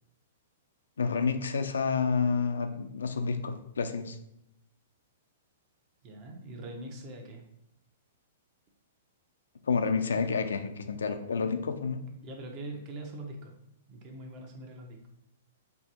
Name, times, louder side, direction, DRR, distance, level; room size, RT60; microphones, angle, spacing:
voice 1, 1.0-4.2 9.7-12.0, left 5 dB, 85° left, 8 dB, 0.4 m, -29 dB
voice 2, 6.0-7.4 12.2-13.5 13.9-15.0, right 1 dB, 40° right, 2 dB, 0.8 m, -42 dB
4.5 x 2.6 x 2.9 m, 0.82 s
hypercardioid pair, 125°, 0 cm